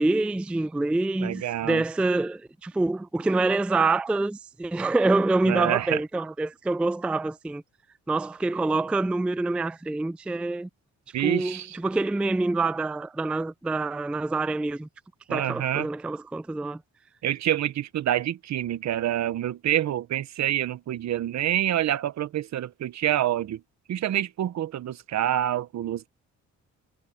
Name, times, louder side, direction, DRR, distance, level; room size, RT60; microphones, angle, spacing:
voice 1, 0.0-7.6 8.1-10.7 11.2-14.9 15.3-16.8, right 2 dB, 5° right, 0.3 m, -26 dB
voice 2, 1.2-1.8 5.4-6.0 11.1-11.8 15.3-15.9 17.2-23.6 23.9-26.1, right 12 dB, 65° right, 1.0 m, -27 dB
cardioid pair, 90°, 30 cm